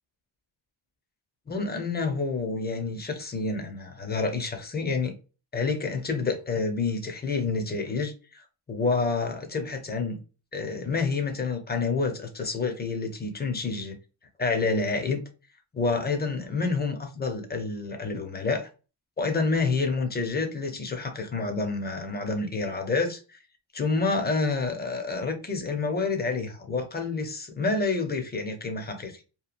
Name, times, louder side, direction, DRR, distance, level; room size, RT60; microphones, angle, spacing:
voice 1, 1.5-5.1 5.5-10.2 10.5-14.0 14.4-15.2 15.7-18.7 19.2-23.4 23.7-29.2, left 4 dB, 20° left, 0.6 m, -28 dB
2.9 x 2.3 x 2.4 m
cardioid pair, 115°, 49 cm